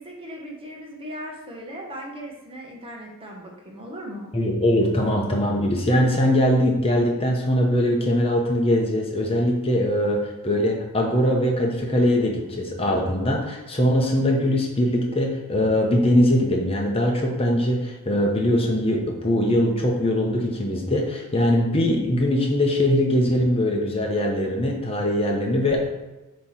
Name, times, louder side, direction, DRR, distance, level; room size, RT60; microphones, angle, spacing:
voice 1, 0.0-4.3, equal, 25° right, -1 dB, 1.3 m, -38 dB
voice 2, 4.3-25.8, left 1 dB, 25° left, 0 dB, 1.0 m, -21 dB
8.4 x 3.2 x 5.8 m, 1.1 s
head